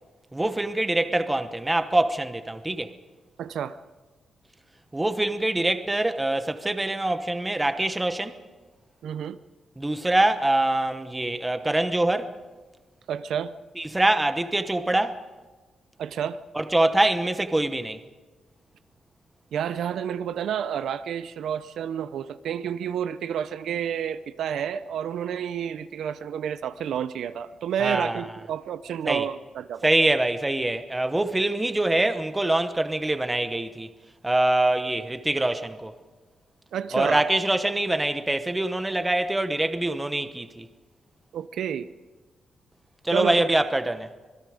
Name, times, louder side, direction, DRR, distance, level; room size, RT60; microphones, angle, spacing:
voice 1, 0.3-2.9 4.9-8.4 9.8-12.3 13.8-15.2 16.5-18.0 27.8-28.3 29.0-29.3 29.8-33.9 34.2-35.9 36.9-40.7 43.0-44.1, right 1 dB, 10° right, 1.0 m, -24 dB
voice 2, 3.4-3.8 9.0-9.4 13.1-13.5 16.0-16.4 19.5-29.8 36.7-37.2 41.3-41.9 43.1-43.4, right 8 dB, 75° right, 0.6 m, -30 dB
26.0 x 20.5 x 5.1 m
wide cardioid pair, 145°, 0 cm